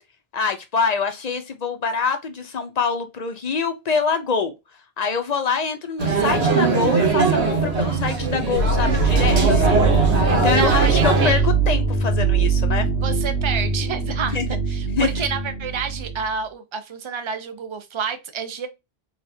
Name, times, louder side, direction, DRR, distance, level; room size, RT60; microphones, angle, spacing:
voice 1, 0.3-4.5 5.0-9.9 10.3-12.9 14.3-14.5 15.0-15.1, left 5 dB, 50° left, 0.6 m, -25 dB
sound 1, 6.0-11.3, right 4 dB, 85° right, 1.2 m, -20 dB
sound 2, 8.6-16.3, right 4 dB, 90° left, 1.0 m, -22 dB
voice 2, 10.5-11.5 13.0-14.4 14.7-18.7, right 6 dB, 35° right, 0.5 m, -29 dB
4.4 x 2.3 x 2.6 m
omnidirectional pair, 1.1 m